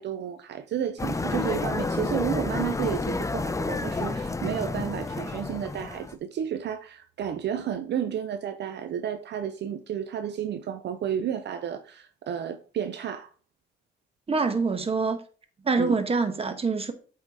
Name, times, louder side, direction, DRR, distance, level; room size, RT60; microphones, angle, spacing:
voice 1, 0.0-13.3 15.8-16.0, right 9 dB, 60° right, 0.6 m, -32 dB
sound 1, 1.0-6.1, left 3 dB, 15° left, 0.6 m, -30 dB
voice 2, 14.3-15.2 15.6-16.9, right 4 dB, 30° right, 1.2 m, -25 dB
8.1 x 3.8 x 4.7 m
cardioid pair, 90°, 20 cm